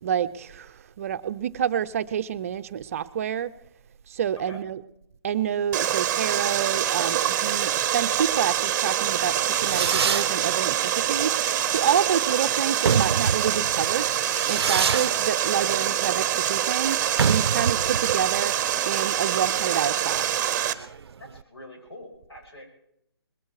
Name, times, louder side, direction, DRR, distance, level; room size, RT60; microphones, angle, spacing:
voice 1, 0.0-3.5 4.1-4.8 5.2-14.1 14.5-18.6 18.9-20.4, right 9 dB, 35° right, 12 dB, 0.6 m, -28 dB
Water, 5.7-20.7, right 10 dB, 15° right, 1.0 m, -25 dB
Fireworks, 9.2-21.4, right 6 dB, 75° right, 0.5 m, -29 dB
voice 2, 21.2-22.7, left 1 dB, 80° left, 1 dB, 7.4 m, -44 dB
20.5 x 14.5 x 4.8 m, 0.78 s
hypercardioid pair, 155°, 13 cm